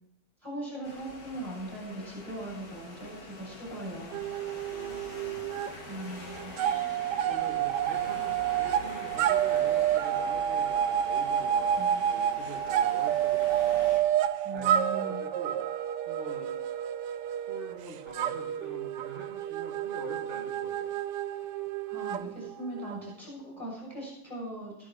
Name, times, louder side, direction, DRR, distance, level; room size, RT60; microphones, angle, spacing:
voice 1, 0.4-4.2 5.9-6.5 8.2-8.3 11.8-12.0 14.4-15.2 21.9-24.9, right 1 dB, 10° right, -4 dB, 6.3 m, -40 dB
sound 1, 0.8-14.0, left 2 dB, 60° left, 2.3 m, -45 dB
sound 2, 4.1-5.7 6.0-23.1, right 10 dB, 85° right, 1.2 m, -29 dB
voice 2, 4.7-5.4 7.3-13.9 14.5-15.6 16.1-16.5 17.5-20.9, right 2 dB, 35° right, -2 dB, 2.1 m, -45 dB
13.5 x 12.0 x 4.0 m, 0.79 s
omnidirectional pair, 1.8 m